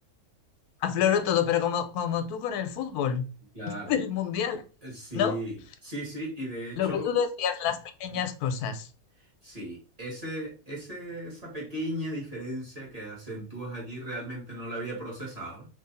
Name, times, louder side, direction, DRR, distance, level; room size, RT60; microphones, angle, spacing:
voice 1, 0.8-3.3 3.8-4.6 5.1-5.4 6.8-8.9, left 8 dB, 90° left, 1.1 m, -27 dB
voice 2, 3.5-3.9 4.8-7.1 8.1-8.2 9.4-15.7, equal, 25° right, 1.4 m, -36 dB
3.1 x 2.6 x 3.9 m
omnidirectional pair, 1.6 m